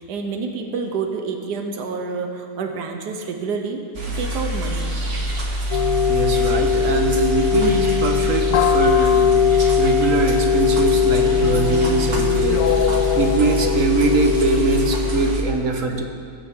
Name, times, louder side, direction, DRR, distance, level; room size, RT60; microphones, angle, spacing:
voice 1, 0.0-4.9 15.1-15.3 15.9-16.0, right 4 dB, 90° right, 4 dB, 1.5 m, -28 dB
sound 1, 3.9-15.4, right 1 dB, 40° right, 1.5 m, -26 dB
sound 2, 5.7-15.3, left 8 dB, 70° left, 1.0 m, -20 dB
voice 2, 6.1-9.3 9.8-12.8 13.1-16.0, right 3 dB, 55° right, 3 dB, 1.4 m, -22 dB
21.0 x 8.7 x 3.7 m, 2.2 s
omnidirectional pair, 1.7 m